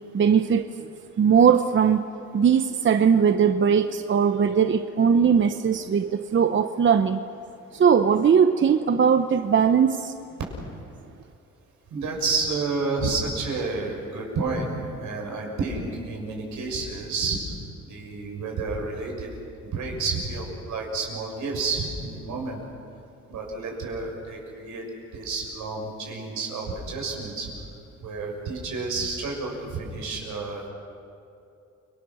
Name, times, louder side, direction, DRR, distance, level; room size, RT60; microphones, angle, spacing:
voice 1, 0.1-0.6 1.2-2.1 2.3-7.2 7.7-10.1, right 7 dB, 40° right, 8 dB, 0.8 m, -20 dB
voice 2, 11.9-17.4 17.8-19.3 19.7-22.6 23.3-24.8 25.1-27.5 28.0-30.7, right 3 dB, 75° right, 0 dB, 6.7 m, -30 dB
30.0 x 21.0 x 6.5 m, 2.7 s
cardioid pair, 90°, 30 cm